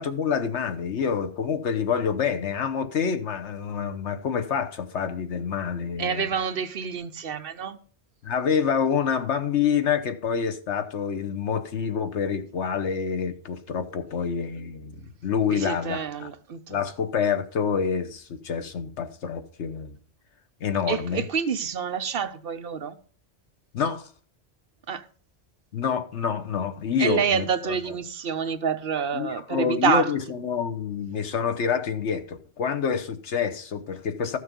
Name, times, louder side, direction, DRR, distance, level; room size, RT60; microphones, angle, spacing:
voice 1, 0.0-6.3 8.2-16.3 16.7-19.9 20.6-21.2 23.7-24.1 25.7-27.8 29.1-34.4, left 7 dB, 90° left, 1.3 m, -27 dB
voice 2, 6.0-7.8 15.5-16.8 20.9-23.0 24.9-25.0 27.0-30.1, right 7 dB, 60° right, 0.9 m, -27 dB
13.5 x 6.5 x 5.3 m
omnidirectional pair, 1.1 m